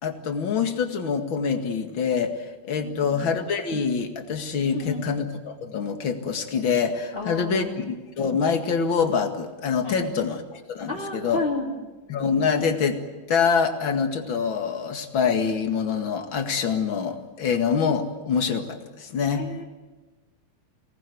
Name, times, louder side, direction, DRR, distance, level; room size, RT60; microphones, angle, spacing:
voice 1, 0.0-10.4 10.7-11.4 12.1-13.0 13.3-19.5, left 6 dB, 45° left, 5 dB, 2.6 m, -25 dB
voice 2, 2.8-3.2 4.7-5.1 7.1-7.8 9.8-10.1 10.9-11.7 19.4-19.6, left 2 dB, 20° left, -5 dB, 3.2 m, -31 dB
25.0 x 19.0 x 9.4 m, 1.2 s
omnidirectional pair, 3.4 m